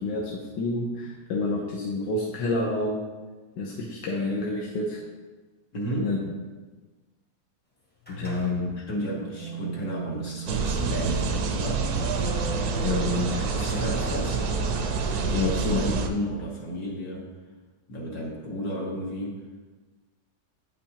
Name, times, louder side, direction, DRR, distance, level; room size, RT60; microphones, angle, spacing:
voice 1, 0.0-3.0 3.6-5.0 6.0-6.2 8.1-8.7 12.8-13.3 15.3-16.0, left 2 dB, 80° left, -3 dB, 1.4 m, -28 dB
voice 2, 5.7-6.2 8.8-11.9 13.5-14.4 15.1-17.3 17.9-19.4, equal, 60° left, -4 dB, 1.6 m, -33 dB
sound 1, 8.0-16.1, right 2 dB, 10° left, 0.7 m, -37 dB
sound 2, 10.5-16.1, right 5 dB, 70° right, 1.0 m, -27 dB
8.8 x 5.8 x 2.9 m, 1.3 s
omnidirectional pair, 1.9 m